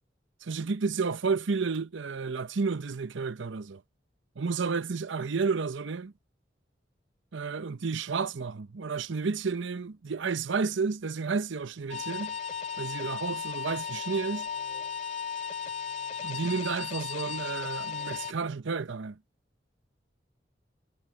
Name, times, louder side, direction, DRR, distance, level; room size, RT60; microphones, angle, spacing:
voice 1, 0.4-3.8 4.4-6.1 7.3-12.4 12.8-14.5 16.2-19.2, right 4 dB, 85° right, 0.7 m, -31 dB
sound 1, 11.9-18.3, left 6 dB, 40° left, 2.1 m, -35 dB
head